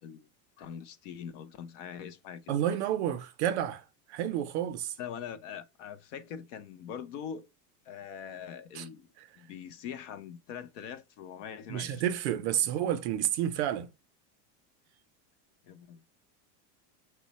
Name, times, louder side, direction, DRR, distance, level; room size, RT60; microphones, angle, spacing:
voice 1, 0.6-2.6 5.0-7.5 7.9-9.1 9.4-12.0 15.6-16.0, left 8 dB, 50° left, 0.5 m, -43 dB
voice 2, 2.5-3.8 4.1-4.9 8.7-8.8 11.7-13.9, right 11 dB, 45° right, 0.4 m, -30 dB
6.2 x 2.1 x 4.0 m
supercardioid pair, 170°, 50 cm